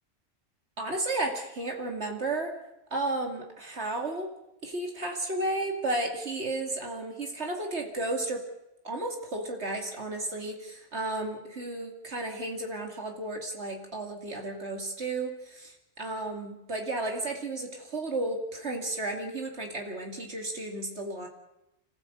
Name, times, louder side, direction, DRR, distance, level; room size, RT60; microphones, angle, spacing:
voice 1, 0.8-2.5 2.9-4.3 4.6-8.5 8.8-21.3, right 2 dB, 70° right, 2 dB, 2.8 m, -33 dB
26.5 x 15.0 x 8.0 m, 0.85 s
omnidirectional pair, 1.2 m